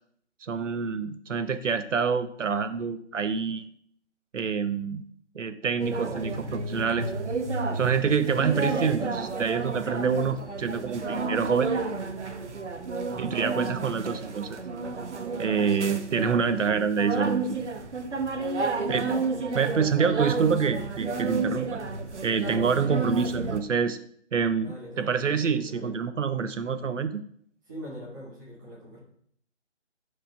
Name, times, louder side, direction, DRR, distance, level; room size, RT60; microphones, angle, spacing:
voice 1, 0.5-3.7 4.3-5.0 5.3-7.1 7.7-11.8 13.2-14.6 15.4-17.6 18.9-19.1 19.5-21.8 22.2-24.0 24.3-27.2, right 6 dB, 90° right, 11 dB, 0.7 m, -27 dB
sound 1, 5.8-23.6, right 3 dB, 70° right, 1.1 m, -31 dB
voice 2, 24.6-26.0 27.7-29.0, right 1 dB, 15° right, -6 dB, 1.8 m, -43 dB
5.5 x 4.9 x 5.6 m, 0.63 s
figure-of-eight pair, 170°, 36 cm